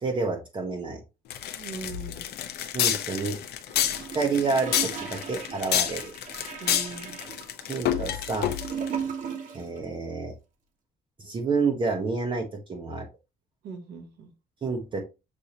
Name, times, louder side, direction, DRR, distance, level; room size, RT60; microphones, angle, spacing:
voice 1, 0.0-1.0 2.7-3.4 4.1-6.1 7.7-8.5 9.5-10.3 11.2-13.0 14.6-15.0, right 4 dB, 30° right, 1 dB, 0.8 m, -29 dB
sound 1, 1.3-9.0, left 10 dB, 75° left, 0.6 m, -29 dB
voice 2, 1.6-2.3 6.6-7.2 13.6-14.3, right 4 dB, 75° right, 6 dB, 1.2 m, -40 dB
Gurgling / Toilet flush, 3.7-9.8 10.0-10.1, right 7 dB, 50° right, 1.2 m, -37 dB
6.5 x 2.7 x 2.8 m, 0.28 s
cardioid pair, 110°, 17 cm